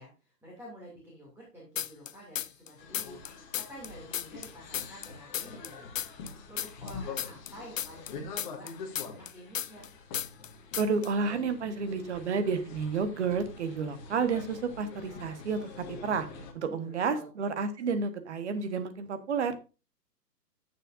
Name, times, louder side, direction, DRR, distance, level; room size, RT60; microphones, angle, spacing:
voice 1, 0.0-8.7 9.1-9.9 16.6-17.3, equal, 5° right, -5 dB, 2.6 m, -50 dB
sound 1, 1.8-2.7 2.9-5.7 6.0-9.9 10.1-10.5 10.7-11.1, left 9 dB, 55° left, 0.5 m, -34 dB
sound 2, 2.8-16.5, left 4 dB, 25° left, 1.6 m, -45 dB
voice 2, 10.8-16.3 16.5-19.5, right 5 dB, 45° right, 10 dB, 1.4 m, -31 dB
13.5 x 6.8 x 2.6 m, 0.31 s
figure-of-eight pair, 130°, 50 cm